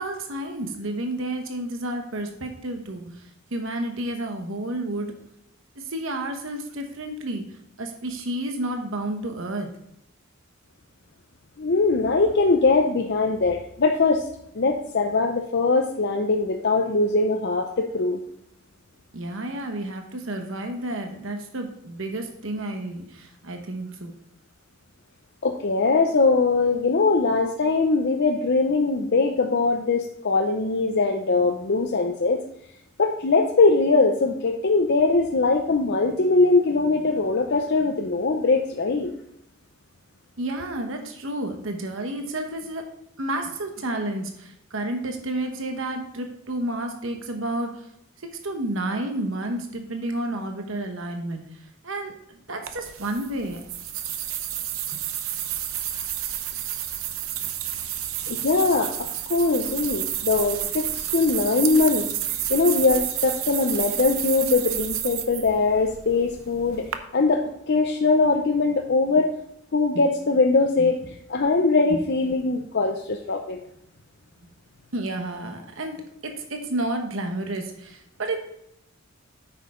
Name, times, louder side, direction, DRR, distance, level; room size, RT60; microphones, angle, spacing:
voice 1, 0.0-5.1 5.7-7.5 7.8-9.7 19.1-24.1 40.4-42.9 43.2-47.9 48.4-53.6 70.8-70.9 71.9-72.0 74.9-76.0 76.3-78.4, right 1 dB, 65° right, 4 dB, 1.1 m, -31 dB
voice 2, 11.6-14.3 14.5-18.2 25.4-32.4 33.0-39.1 58.3-62.1 62.5-66.9 67.1-69.3 69.7-73.6, left 3 dB, 55° left, 3 dB, 0.6 m, -21 dB
sound 1, 52.7-67.0, right 11 dB, 80° right, 0.8 m, -30 dB
9.1 x 6.3 x 3.7 m, 0.77 s
head